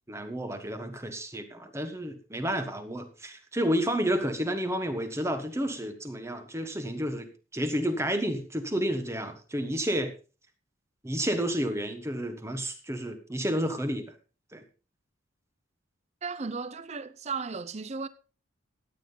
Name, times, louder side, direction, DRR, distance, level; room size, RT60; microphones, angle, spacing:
voice 1, 0.1-10.1 11.0-14.1 14.5-14.6, equal, 15° right, 1.4 m, -31 dB
voice 2, 16.2-18.1, right 4 dB, 35° right, 0.5 m, -35 dB
15.0 x 9.3 x 4.0 m
head